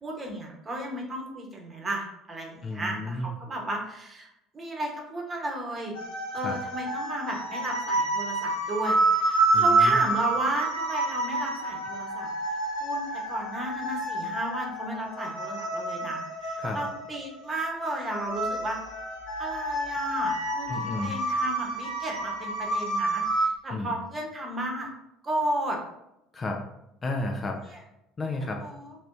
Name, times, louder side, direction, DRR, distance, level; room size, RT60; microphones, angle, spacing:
voice 1, 0.0-4.3 4.5-6.0 6.3-12.3 12.8-18.8 19.4-24.9 25.2-25.8 27.7-27.8 28.6-28.9, right 1 dB, 25° right, 0 dB, 1.0 m, -34 dB
voice 2, 2.6-3.3 6.4-6.6 9.5-10.0 16.6-16.8 20.7-21.1 23.7-23.9 26.3-26.6 27.0-27.8 28.2-28.6, left 2 dB, 25° left, 2 dB, 0.4 m, -32 dB
sound 1, 5.9-23.5, right 2 dB, 65° left, 0.8 m, -28 dB
2.9 x 2.9 x 3.4 m, 0.83 s
figure-of-eight pair, 60°, 0 cm